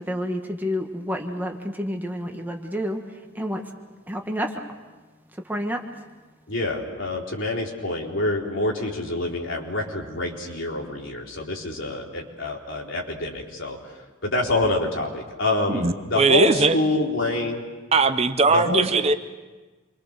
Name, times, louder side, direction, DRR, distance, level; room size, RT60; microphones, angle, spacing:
voice 1, 0.0-3.6 4.1-4.6 5.3-6.0, equal, 10° right, 2 dB, 1.5 m, -29 dB
voice 2, 6.5-13.8 14.2-17.6 18.5-18.9, left 2 dB, 65° left, -1 dB, 3.9 m, -26 dB
voice 3, 15.7-16.8 17.9-19.1, right 4 dB, 30° right, 9 dB, 0.7 m, -20 dB
28.0 x 24.0 x 6.6 m, 1.3 s
head